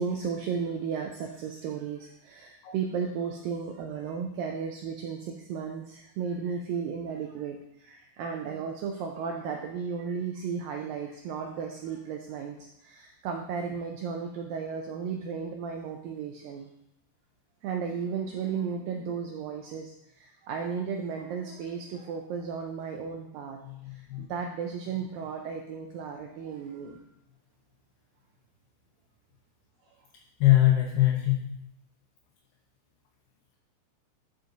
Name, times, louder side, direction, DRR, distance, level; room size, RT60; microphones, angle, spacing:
voice 1, 0.0-16.7 17.6-23.6 23.9-27.0, right 6 dB, 85° right, 2 dB, 2.0 m, -34 dB
voice 2, 23.6-24.2 30.4-31.6, left 14 dB, 75° left, -1 dB, 2.9 m, -23 dB
12.0 x 5.2 x 3.9 m, 0.79 s
omnidirectional pair, 4.9 m